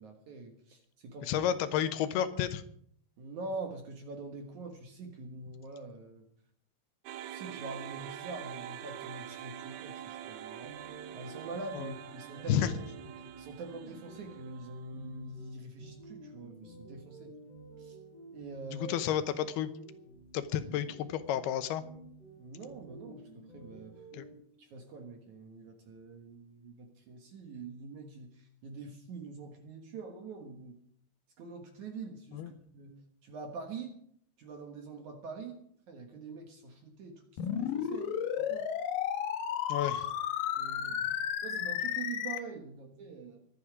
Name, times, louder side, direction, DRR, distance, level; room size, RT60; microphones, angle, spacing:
voice 1, 0.0-1.5 3.2-6.3 7.2-10.8 11.1-12.7 13.0-17.4 17.8-18.0 18.3-18.9 22.4-23.9 24.6-30.8 31.4-34.0 34.4-35.6 35.9-38.7 40.6-41.2 41.4-43.4, right 3 dB, 60° right, 3 dB, 2.5 m, -45 dB
voice 2, 1.2-2.6 11.8-11.9 12.5-12.8 18.8-19.7 20.3-21.8 24.1-24.3 32.3-32.5 39.7-40.1, left 10 dB, 90° left, 11 dB, 3.0 m, -31 dB
sound 1, 7.0-15.3, right 10 dB, 80° right, 2.7 m, -45 dB
sound 2, 10.6-24.3, right 3 dB, 25° left, 8.5 m, -52 dB
sound 3, 37.4-42.4, left 9 dB, 70° left, 2.5 m, -33 dB
23.5 x 8.7 x 4.9 m, 0.64 s
omnidirectional pair, 4.5 m